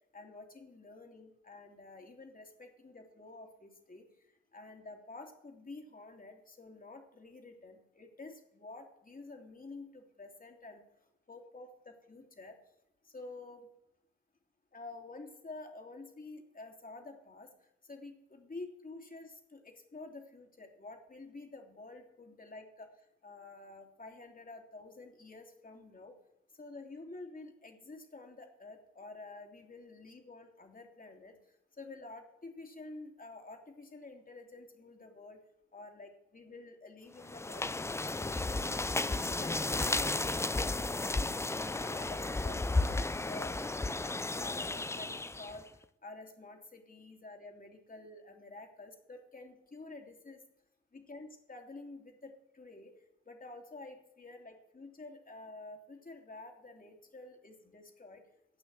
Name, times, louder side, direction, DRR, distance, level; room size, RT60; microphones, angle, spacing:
voice 1, 0.1-4.0 4.5-10.8 11.3-12.6 13.0-13.7 14.7-17.5 17.8-22.9 23.2-26.1 26.5-31.3 31.8-35.4 35.7-38.9 39.2-40.7 41.7-45.6 46.0-50.4 50.9-52.9 53.3-58.2, left 3 dB, 30° left, 3 dB, 3.2 m, -49 dB
sound 1, 37.2-45.6, left 2 dB, 10° left, 0.5 m, -33 dB
17.5 x 6.2 x 7.7 m, 0.88 s
hypercardioid pair, 45°, 30 cm